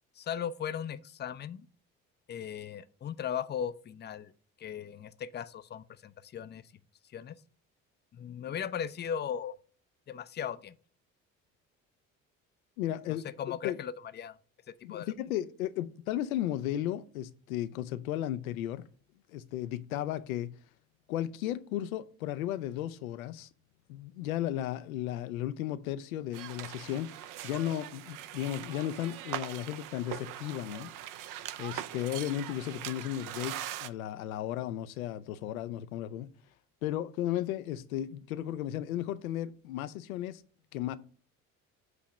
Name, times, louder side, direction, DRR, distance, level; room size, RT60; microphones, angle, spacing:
voice 1, 0.2-1.7 2.3-4.3 4.6-6.6 7.1-7.3 8.1-9.6 10.1-10.8 13.2-14.4 14.7-15.1, left 8 dB, 25° left, 0.4 m, -37 dB
voice 2, 12.8-13.8 14.8-18.9 19.3-20.5 21.1-23.5 23.9-30.9 31.6-36.3 36.8-40.4 40.7-41.0, left 12 dB, 80° left, 0.5 m, -35 dB
sound 1, 26.3-33.9, right 12 dB, 50° right, 0.6 m, -41 dB
7.9 x 2.9 x 6.1 m
hypercardioid pair, 55°, 41 cm